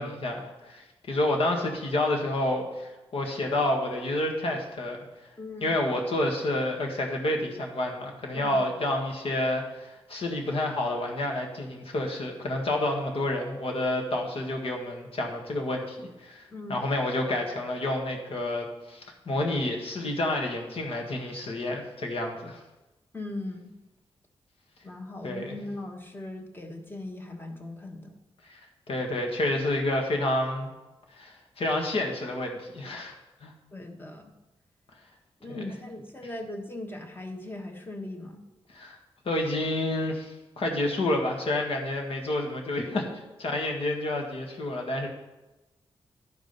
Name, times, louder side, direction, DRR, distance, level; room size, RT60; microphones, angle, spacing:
voice 1, 0.0-5.0 5.6-16.4 16.7-22.6 25.2-25.6 28.4-28.6 28.9-30.7 31.1-33.1 33.4-33.5 35.5-35.6 38.7-39.0 39.3-43.1 43.4-45.1, left 1 dB, 65° left, 1 dB, 1.8 m, -29 dB
voice 2, 5.4-5.7 8.3-8.6 16.5-16.8 23.1-23.7 24.8-28.2 33.7-34.3 35.4-38.4, left 2 dB, 20° left, 4 dB, 1.3 m, -39 dB
12.0 x 5.0 x 5.4 m, 1.1 s
wide cardioid pair, 105°, 10 cm